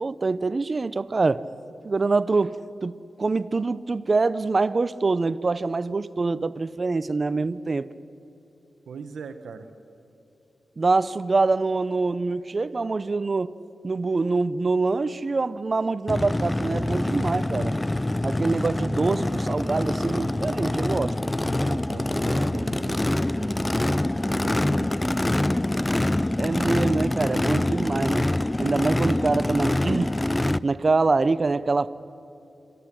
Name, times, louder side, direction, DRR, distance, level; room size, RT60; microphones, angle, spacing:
voice 1, 0.0-1.5 1.8-7.9 10.8-13.5 13.8-17.7 18.2-21.2 26.4-28.3 28.6-30.2 30.6-31.9, right 3 dB, 45° right, 0.7 m, -25 dB
voice 2, 8.9-9.7 21.1-23.7 24.3-25.0, right 5 dB, 85° right, 1.1 m, -40 dB
Race car auto racing / Idling / Accelerating revving vroom, 16.1-30.6, left 1 dB, 20° left, 0.5 m, -25 dB
27.5 x 14.0 x 10.0 m
cardioid pair, 55°, 0 cm